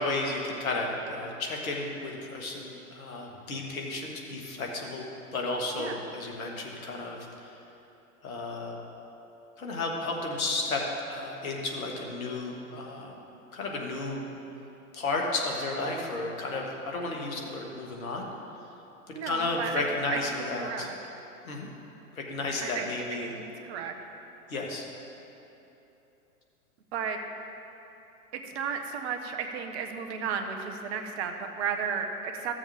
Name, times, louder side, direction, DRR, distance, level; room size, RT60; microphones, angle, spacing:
voice 1, 0.0-5.0 5.3-7.5 8.2-8.8 9.6-10.8 11.1-13.2 13.5-14.3 14.9-18.3 19.1-20.9 21.4-21.7 22.1-23.3 24.5-24.9, left 2 dB, 70° left, 0 dB, 1.7 m, -33 dB
voice 2, 19.1-19.8 20.1-20.2 20.6-20.9 22.6-23.9 26.9-27.2 28.3-32.5, right 6 dB, 45° right, 5 dB, 1.0 m, -34 dB
15.0 x 7.1 x 3.5 m, 3.0 s
figure-of-eight pair, 100°, 44 cm